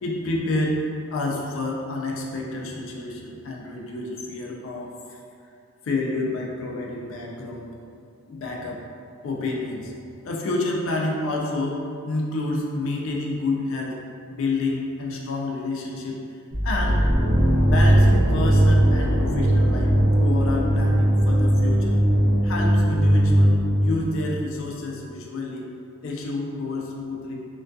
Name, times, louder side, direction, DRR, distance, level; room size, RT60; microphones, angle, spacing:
voice 1, 0.0-5.2 5.8-7.7 8.3-8.8 9.2-9.9 10.2-14.0 14.3-16.2 16.6-17.1 17.7-19.9 20.2-22.0 22.4-25.7 26.0-27.3, left 2 dB, 60° left, 0 dB, 0.3 m, -29 dB
sound 1, 16.5-24.4, equal, 35° right, 0.5 m, -19 dB
2.6 x 2.2 x 2.2 m, 2.4 s
head